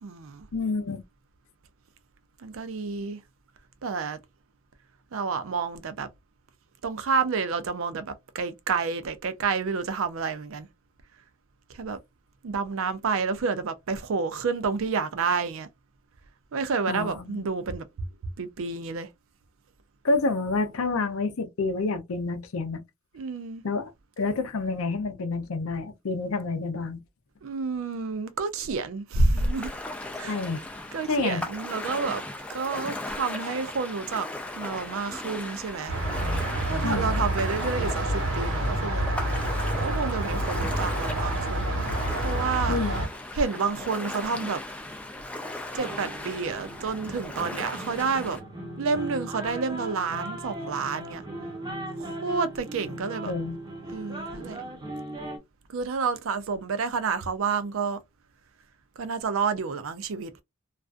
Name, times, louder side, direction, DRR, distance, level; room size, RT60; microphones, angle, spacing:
voice 1, 0.0-0.5 2.4-3.2 3.8-4.2 5.1-6.1 6.8-10.7 11.7-12.0 12.4-15.7 16.5-18.1 18.4-19.1 23.1-23.6 27.4-29.7 30.2-30.4 30.9-34.3 34.5-35.9 36.6-39.2 39.7-41.9 42.2-42.8 43.3-44.6 45.7-48.4 48.8-51.2 52.0-53.3 53.9-54.7 55.7-58.0 59.0-60.4, right 4 dB, 70° right, 0.4 m, -29 dB
voice 2, 0.5-1.0 16.9-17.5 20.0-22.8 23.6-23.9 24.2-27.0 30.2-30.6 31.1-31.4 36.8-37.1 42.7-43.0 53.3-53.6, left 3 dB, 75° left, 0.5 m, -28 dB
Ocean, 29.4-48.4, left 1 dB, 5° left, 0.3 m, -38 dB
sound 1, 35.9-43.1, right 1 dB, 90° right, 1.1 m, -28 dB
sound 2, 45.8-55.4, right 1 dB, 20° right, 0.7 m, -38 dB
2.4 x 2.3 x 2.4 m
head